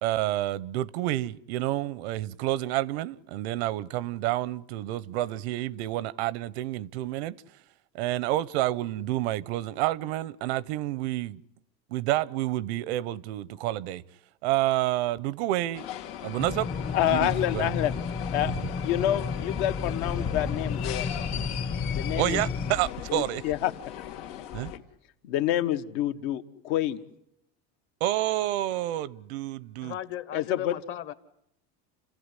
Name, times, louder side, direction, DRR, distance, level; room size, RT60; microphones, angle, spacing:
voice 1, 0.0-7.4 7.9-11.4 11.9-14.0 14.4-15.9 16.2-16.7 17.1-17.7 18.4-18.5 22.2-23.4 24.5-24.7 28.0-30.0, right 15 dB, 90° right, 0.9 m, -29 dB
sound 1, 15.7-24.8, left 9 dB, 90° left, 2.6 m, -37 dB
sound 2, 16.4-22.7, left 4 dB, 20° left, 1.0 m, -33 dB
voice 2, 16.9-17.9 18.3-18.5 18.8-21.1 21.9-22.4 23.1-23.7 24.0-24.1 24.7-24.8 25.2-27.0 30.3-30.7, left 12 dB, 65° left, 1.5 m, -28 dB
voice 3, 29.8-31.1, left 11 dB, 40° left, 1.4 m, -36 dB
29.5 x 15.5 x 9.8 m
cardioid pair, 160°, 31 cm